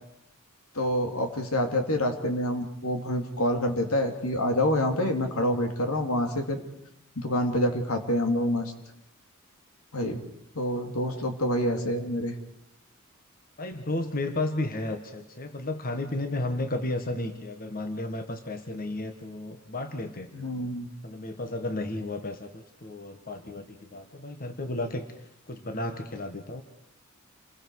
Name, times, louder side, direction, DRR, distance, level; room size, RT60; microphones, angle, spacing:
voice 1, 0.7-6.6 7.2-8.7 9.9-10.2 10.5-12.3 20.3-20.9, left 1 dB, 90° left, 5 dB, 2.8 m, -27 dB
voice 2, 13.6-20.3 21.0-25.0 25.5-26.6, left 2 dB, 45° left, 7 dB, 1.5 m, -33 dB
28.5 x 22.0 x 4.8 m, 0.81 s
head